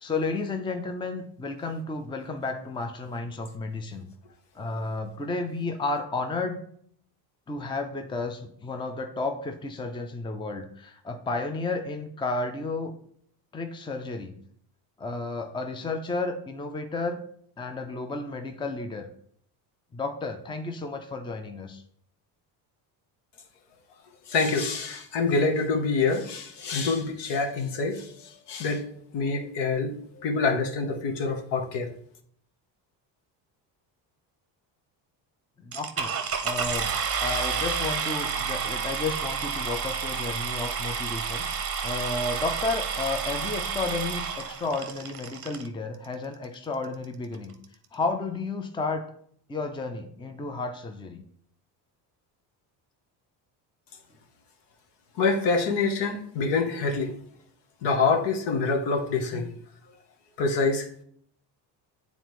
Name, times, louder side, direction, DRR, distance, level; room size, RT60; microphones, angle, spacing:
voice 1, 0.0-4.1 4.5-6.6 7.5-12.9 13.5-14.3 15.0-17.2 17.6-19.1 19.9-21.8 35.6-36.2 36.4-36.9 37.2-47.5 47.9-49.1 49.5-51.2 59.3-59.4, left 3 dB, 10° left, 0.6 m, -32 dB
voice 2, 24.3-28.9 29.1-31.9 55.2-57.1 57.8-59.5 60.4-60.9, left 4 dB, 65° left, 1.2 m, -26 dB
sound 1, 35.7-45.7 46.4-46.5 47.0-47.1 47.3-47.6, right 6 dB, 30° right, 0.8 m, -30 dB
8.8 x 4.0 x 3.1 m
cardioid pair, 100°, 45 cm